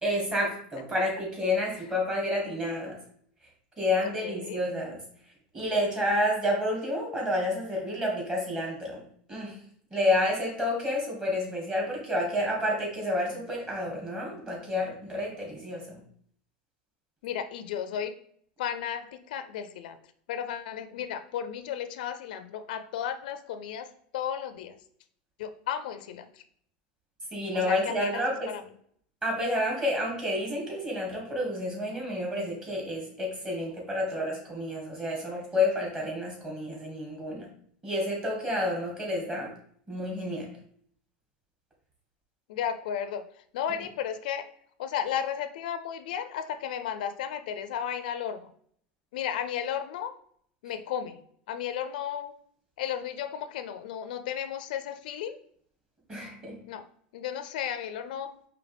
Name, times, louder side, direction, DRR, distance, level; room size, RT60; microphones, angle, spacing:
voice 1, 0.0-3.0 3.8-5.0 5.5-9.0 9.3-9.6 9.9-16.0 27.3-28.5 29.2-37.5 37.8-39.5 39.9-40.5 56.1-56.6, left 1 dB, 20° right, -2 dB, 1.9 m, -29 dB
voice 2, 4.0-4.6 17.2-18.1 18.6-20.0 20.3-24.8 25.4-26.4 27.6-28.6 42.5-43.3 43.5-44.5 44.8-48.5 49.1-50.1 50.6-51.2 51.5-52.3 52.8-55.4 56.7-56.9 57.1-58.3, left 9 dB, 80° left, 10 dB, 0.4 m, -34 dB
5.1 x 2.8 x 3.4 m, 0.62 s
supercardioid pair, 125°, 5 cm